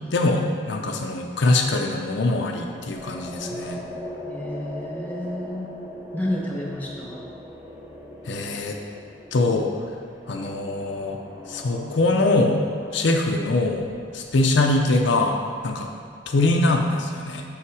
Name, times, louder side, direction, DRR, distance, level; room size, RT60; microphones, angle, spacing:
voice 1, 0.1-3.8 8.3-8.8 9.3-9.7 10.3-11.2 11.5-12.6 12.9-13.9 14.1-15.4 15.6-15.9 16.3-17.4, left 2 dB, 65° left, 2 dB, 0.5 m, -22 dB
sound 1, 2.5-16.1, left 1 dB, 10° right, 0.8 m, -40 dB
voice 2, 4.2-5.7 6.1-7.2, left 1 dB, 10° left, -3 dB, 1.1 m, -30 dB
7.0 x 5.6 x 4.7 m, 2.2 s
head